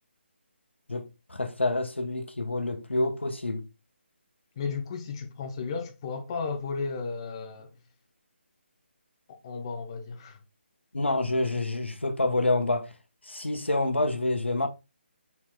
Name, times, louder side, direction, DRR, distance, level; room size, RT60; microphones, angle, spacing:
voice 1, 0.9-3.7 10.9-12.9 13.2-14.7, left 2 dB, 75° left, 0.9 m, -27 dB
voice 2, 4.6-7.7 9.3-10.4, left 4 dB, 25° left, 0.8 m, -34 dB
4.5 x 4.3 x 2.2 m
figure-of-eight pair, 150°, 6 cm